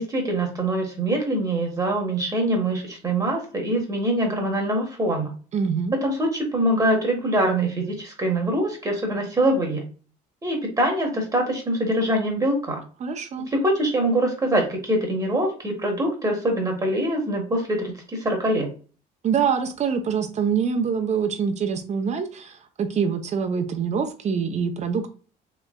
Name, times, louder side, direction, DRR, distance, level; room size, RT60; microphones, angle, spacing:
voice 1, 0.0-5.3 6.0-9.8 10.4-12.8 13.5-18.7, right 1 dB, 20° right, 2 dB, 1.2 m, -24 dB
voice 2, 5.5-5.9 13.0-13.5 19.2-25.1, right 6 dB, 40° right, 6 dB, 0.7 m, -25 dB
3.1 x 3.1 x 2.3 m, 0.38 s
cardioid pair, 110°, 17 cm